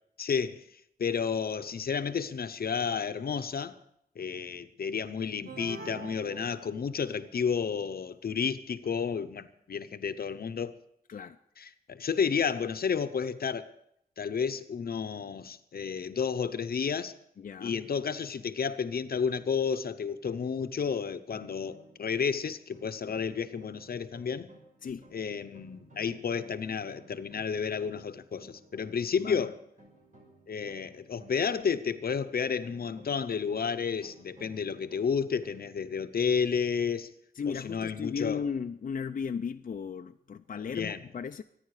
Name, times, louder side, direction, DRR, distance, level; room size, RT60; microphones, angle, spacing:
voice 1, 0.2-0.6 1.0-3.8 4.2-10.8 11.6-13.7 14.2-17.2 17.6-24.5 25.1-29.6 30.5-37.1 37.5-38.4 40.7-41.0, left 6 dB, 80° left, 0.8 m, -31 dB
sound 1, 5.5-7.3, right 3 dB, 90° right, 1.5 m, -45 dB
voice 2, 17.4-17.8 24.8-25.1 29.2-29.5 37.3-41.4, left 6 dB, 60° left, 0.5 m, -36 dB
sound 2, 20.0-35.5, right 1 dB, 55° right, 5.7 m, -57 dB
24.5 x 10.0 x 4.9 m
wide cardioid pair, 130°, 16 cm